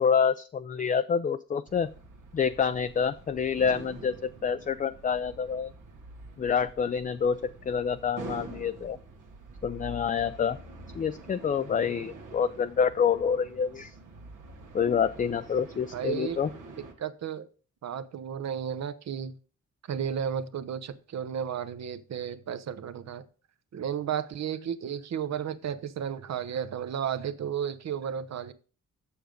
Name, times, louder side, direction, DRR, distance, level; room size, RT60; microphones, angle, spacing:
voice 1, 0.0-1.9 2.3-5.7 6.4-9.0 9.6-10.6 10.9-13.9 14.7-16.5, left 6 dB, 30° left, 11 dB, 0.4 m, -27 dB
sound 1, 1.7-16.9, right 3 dB, 85° right, 1.6 m, -46 dB
voice 2, 15.9-16.4 17.0-17.5 17.8-19.4 19.8-23.3 23.7-28.5, right 8 dB, 60° right, 13 dB, 0.8 m, -33 dB
7.1 x 6.3 x 5.1 m, 0.37 s
cardioid pair, 85°, 30 cm